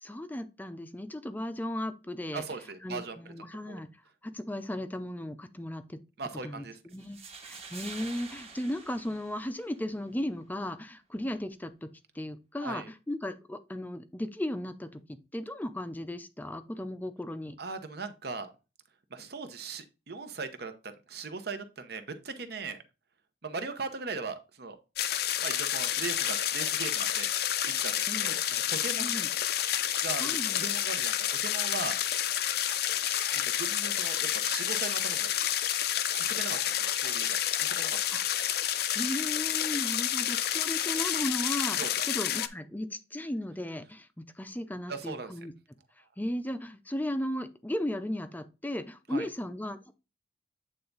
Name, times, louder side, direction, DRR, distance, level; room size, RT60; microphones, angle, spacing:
voice 1, 0.0-2.4 2.8-3.9 4.2-6.0 6.4-17.6 28.1-28.4 29.0-29.3 30.2-30.6 38.1-38.2 38.9-45.5 46.2-49.9, left 1 dB, 10° left, 0.5 m, -36 dB
voice 2, 2.3-3.2 3.7-3.8 6.2-6.8 12.6-12.9 17.6-18.5 19.1-22.8 23.4-24.8 25.4-27.3 27.7-27.9 28.2-28.4 28.7-29.1 30.0-31.1 31.4-32.0 33.3-35.3 36.1-38.0 41.8-41.9 44.9-45.3 49.1-49.2, right 4 dB, 60° right, 0.9 m, -39 dB
sound 1, 6.9-9.9, right 5 dB, 35° right, 1.2 m, -47 dB
sound 2, 25.0-42.5, left 11 dB, 60° left, 0.5 m, -29 dB
8.5 x 3.4 x 3.9 m
head